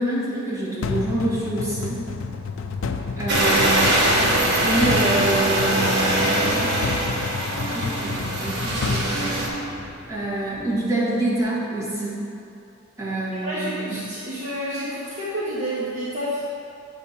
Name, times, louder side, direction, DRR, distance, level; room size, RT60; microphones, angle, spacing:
voice 1, 0.0-2.1 3.2-4.0 4.6-7.2 7.7-9.4 10.1-12.3 13.0-14.0, right 1 dB, 15° right, -8 dB, 1.7 m, -26 dB
sound 1, 0.8-10.0, left 4 dB, 65° left, 0.4 m, -30 dB
sound 2, 3.3-9.5, right 1 dB, 55° right, 1.3 m, -22 dB
sound 3, 4.8-11.4, right 2 dB, 10° left, 1.3 m, -38 dB
voice 2, 13.4-16.4, equal, 35° right, -9 dB, 1.1 m, -29 dB
8.0 x 3.9 x 5.8 m, 2.6 s
head